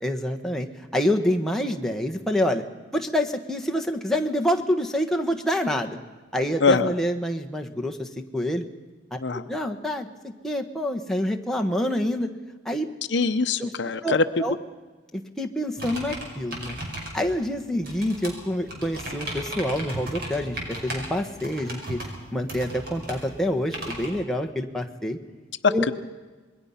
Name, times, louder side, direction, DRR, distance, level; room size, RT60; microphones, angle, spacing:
voice 1, 0.0-2.6 2.9-6.0 6.3-8.6 9.1-9.2 9.5-12.3 12.6-12.9 13.6-13.7 14.0-14.6 15.1-16.8 17.1-22.0 22.3-25.2 25.7-25.8, left 1 dB, ahead, 3 dB, 1.3 m, -27 dB
voice 2, 6.6-6.9 9.2-9.4 13.1-14.2 25.6-25.9, left 4 dB, 65° left, 10 dB, 0.8 m, -22 dB
sound 1, 15.8-24.1, right 1 dB, 50° right, 5.5 m, -36 dB
26.5 x 21.5 x 5.7 m, 1.3 s
head